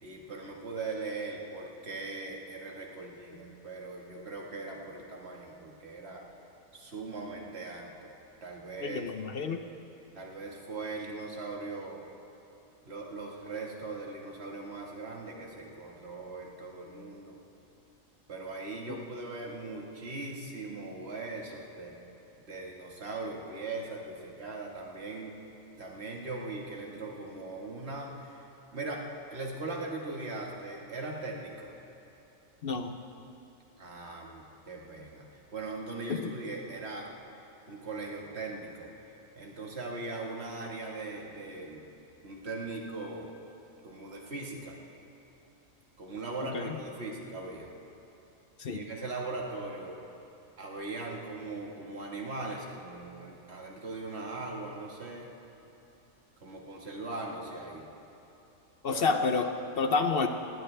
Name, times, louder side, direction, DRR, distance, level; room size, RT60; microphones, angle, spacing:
voice 1, 0.0-6.3 6.7-8.1 8.4-9.0 10.1-12.0 12.8-17.4 18.3-22.0 22.5-25.4 25.8-28.5 28.7-29.1 29.3-31.7 33.8-37.1 37.7-38.9 39.4-41.8 42.2-43.3 43.8-44.8 46.0-47.7 48.7-50.0 50.6-55.3 56.4-57.9 58.9-59.1, right 3 dB, 50° right, -1 dB, 2.0 m, -40 dB
voice 2, 8.8-9.6 32.6-33.0 36.1-36.3 46.5-46.8 48.6-48.8 58.8-60.3, left 4 dB, 50° left, 6 dB, 0.8 m, -29 dB
19.0 x 18.0 x 3.4 m, 3.0 s
omnidirectional pair, 1.4 m